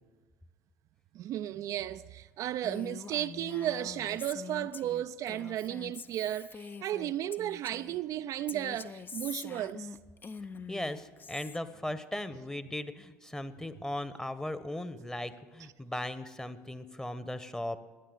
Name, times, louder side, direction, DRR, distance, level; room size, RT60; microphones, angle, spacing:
voice 1, 1.1-9.9, right 12 dB, 50° right, 0.4 m, -34 dB
Female speech woman speaking, 2.6-8.0 8.5-11.6, left 5 dB, 30° left, 0.6 m, -45 dB
voice 2, 10.7-17.8, left 1 dB, 10° left, 1.1 m, -38 dB
17.0 x 10.0 x 7.9 m
hypercardioid pair, 65°, 7 cm